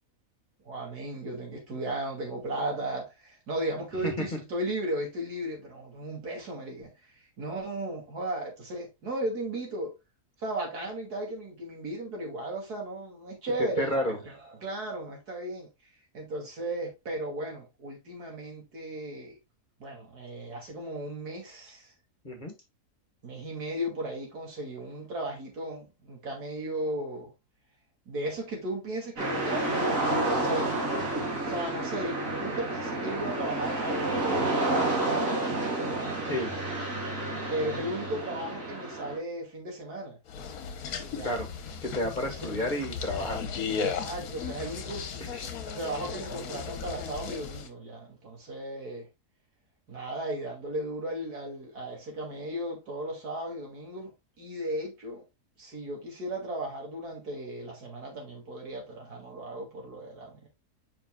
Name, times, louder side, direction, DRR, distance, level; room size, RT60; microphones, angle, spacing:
voice 1, 0.6-6.9 7.4-10.0 10.4-15.7 16.1-19.4 19.8-21.9 23.2-27.3 28.1-30.7 31.0-31.1 31.5-36.2 37.5-40.2 41.1-41.4 42.4-42.5 43.8-45.1 45.7-49.1 49.9-54.1 54.4-55.2 55.6-60.5, right 1 dB, 80° right, 2.9 m, -36 dB
voice 2, 13.6-14.2 22.2-22.5 36.2-36.5 41.2-41.5 41.8-43.4 45.2-45.5, left 1 dB, 30° left, 1.5 m, -31 dB
sound 1, 29.2-39.2, right 2 dB, 55° right, 3.2 m, -30 dB
sound 2, 40.3-47.7, left 6 dB, 70° left, 1.3 m, -36 dB
7.4 x 5.6 x 2.2 m
omnidirectional pair, 1.6 m